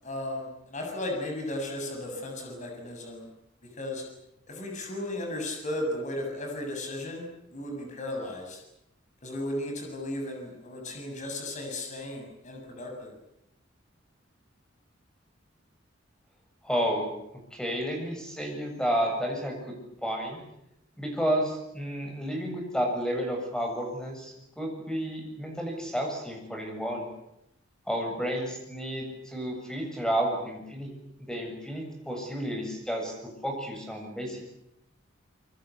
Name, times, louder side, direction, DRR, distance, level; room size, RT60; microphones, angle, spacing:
voice 1, 0.0-3.3 3.7-4.0 4.5-8.6 9.2-13.2, left 1 dB, 40° left, 2 dB, 7.2 m, -35 dB
voice 2, 16.6-17.1 17.5-19.6 20.0-20.4 21.0-27.1 27.9-30.9 31.2-34.4, equal, 5° left, 2 dB, 7.7 m, -31 dB
26.0 x 24.0 x 8.5 m, 0.81 s
head